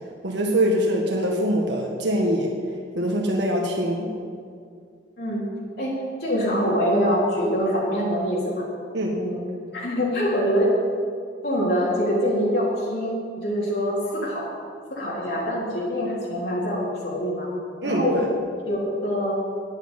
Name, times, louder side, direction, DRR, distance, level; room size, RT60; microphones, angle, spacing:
voice 1, 0.2-2.5 2.9-4.1 8.9-9.2 17.8-18.2, equal, 80° right, 0 dB, 1.6 m, -23 dB
voice 2, 6.2-8.6 9.1-9.4 9.7-10.7 11.4-13.1 13.4-14.5 14.9-17.5 17.8-18.2 18.7-19.4, equal, 65° left, -6 dB, 3.4 m, -24 dB
9.7 x 9.1 x 9.7 m, 2.2 s
head